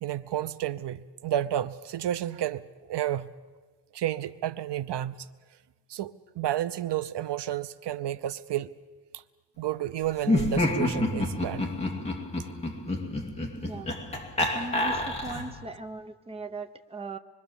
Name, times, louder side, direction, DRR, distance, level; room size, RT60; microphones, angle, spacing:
voice 1, 0.0-3.3 3.9-5.3 5.9-8.7 9.1-9.2 9.6-11.7 14.4-14.6, right 12 dB, 70° right, 13 dB, 0.7 m, -31 dB
Laughter, 10.2-15.6, left 1 dB, 15° left, 2.4 m, -28 dB
voice 2, 14.5-17.2, right 3 dB, 15° right, 6 dB, 0.8 m, -38 dB
26.0 x 22.5 x 7.2 m, 1.3 s
wide cardioid pair, 175°, 43 cm